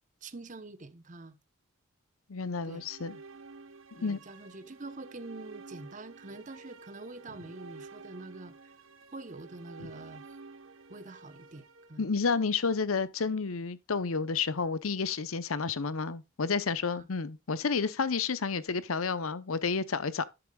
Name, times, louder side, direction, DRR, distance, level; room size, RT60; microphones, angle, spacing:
voice 1, 0.2-1.4 2.6-2.9 4.0-8.8 9.1-10.4 10.9-12.1 16.9-17.1, right 2 dB, 35° right, 0.9 m, -45 dB
voice 2, 2.3-3.2 3.9-4.2 9.8-9.9 12.0-20.3, left 5 dB, 85° left, 0.8 m, -30 dB
sound 1, 2.4-12.6, right 4 dB, 75° right, 1.1 m, -51 dB
11.0 x 7.9 x 2.3 m
head